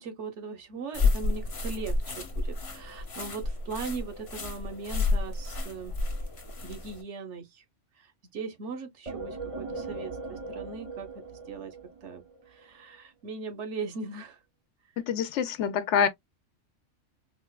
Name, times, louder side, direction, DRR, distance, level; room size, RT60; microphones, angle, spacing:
voice 1, 0.0-5.9 6.6-7.6 8.0-11.8 12.0-14.4, right 4 dB, 70° right, 1.1 m, -39 dB
sound 1, 0.9-7.0, left 3 dB, 35° left, 0.7 m, -30 dB
sound 2, 9.1-12.7, right 3 dB, 40° right, 0.5 m, -39 dB
voice 2, 15.0-16.1, left 7 dB, 75° left, 0.9 m, -26 dB
4.2 x 2.2 x 2.3 m
omnidirectional pair, 1.2 m